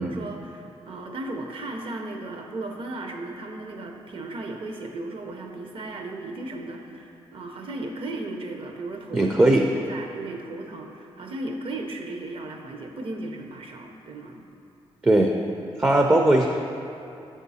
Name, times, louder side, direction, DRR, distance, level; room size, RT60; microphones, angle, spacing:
voice 1, 0.0-14.4, right 2 dB, 55° right, 3 dB, 0.7 m, -36 dB
voice 2, 9.1-9.7 15.0-15.3 15.8-16.5, right 1 dB, 15° right, 2 dB, 0.4 m, -19 dB
6.6 x 3.7 x 4.1 m, 2.8 s
cardioid pair, 85°, 11 cm